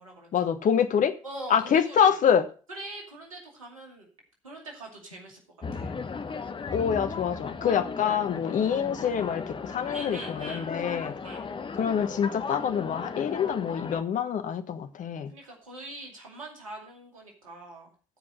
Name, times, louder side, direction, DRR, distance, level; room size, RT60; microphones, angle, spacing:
voice 1, 0.3-1.1 1.5-2.4 6.7-11.2 11.8-15.3, left 8 dB, 50° left, 10 dB, 1.2 m, -26 dB
voice 2, 1.2-2.1 2.7-4.1 4.4-5.4 5.7-5.9 9.9-10.7 11.2-11.4 15.3-17.9, right 1 dB, 85° right, 1 dB, 2.4 m, -42 dB
sound 1, 5.6-14.0, left 5 dB, 30° left, 1.0 m, -36 dB
14.5 x 5.0 x 6.3 m, 0.38 s
figure-of-eight pair, 45°, 17 cm